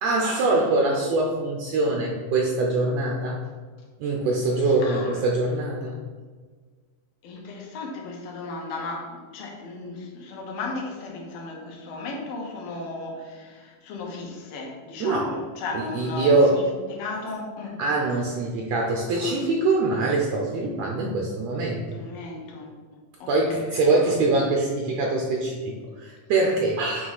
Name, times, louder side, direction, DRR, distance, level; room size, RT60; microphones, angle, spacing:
voice 1, 0.0-3.4 4.0-6.0 15.0-15.4 15.7-16.6 17.8-22.0 23.3-27.1, right 2 dB, 85° right, 0 dB, 1.5 m, -23 dB
voice 2, 4.8-5.2 7.2-16.6 16.9-17.8 21.9-22.7 23.2-23.3 23.6-23.9, left 3 dB, 85° left, -1 dB, 3.0 m, -35 dB
7.7 x 3.2 x 5.6 m, 1.5 s
omnidirectional pair, 3.9 m